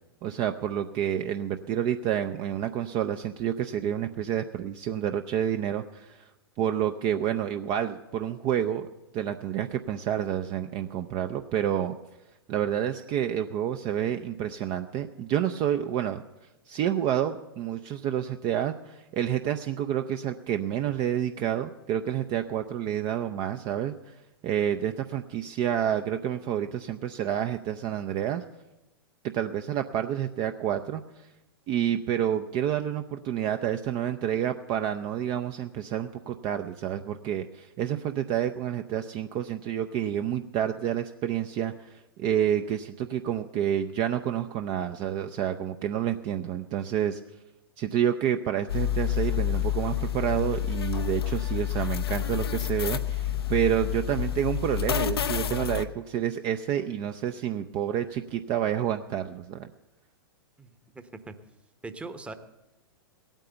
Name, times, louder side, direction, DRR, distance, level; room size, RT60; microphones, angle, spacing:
voice 1, 0.2-6.3 6.6-8.9 9.1-12.0 12.5-16.2 16.7-24.1 24.4-28.4 29.2-31.3 31.7-47.2 47.8-59.7, right 10 dB, 35° right, 8 dB, 0.5 m, -29 dB
sound 1, 48.7-55.8, left 10 dB, 80° left, 0.6 m, -29 dB
voice 2, 60.6-61.3 61.8-62.3, right 3 dB, 10° right, 10 dB, 0.9 m, -41 dB
16.5 x 9.0 x 6.9 m, 1.0 s
hypercardioid pair, 115°, 13 cm